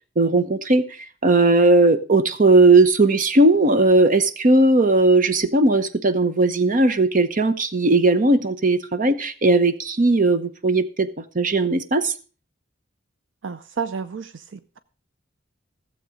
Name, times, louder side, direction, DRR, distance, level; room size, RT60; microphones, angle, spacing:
voice 1, 0.2-12.1, right 2 dB, 45° right, 0.9 m, -17 dB
voice 2, 13.4-14.8, right 6 dB, 70° right, 0.6 m, -31 dB
15.5 x 7.6 x 5.1 m
head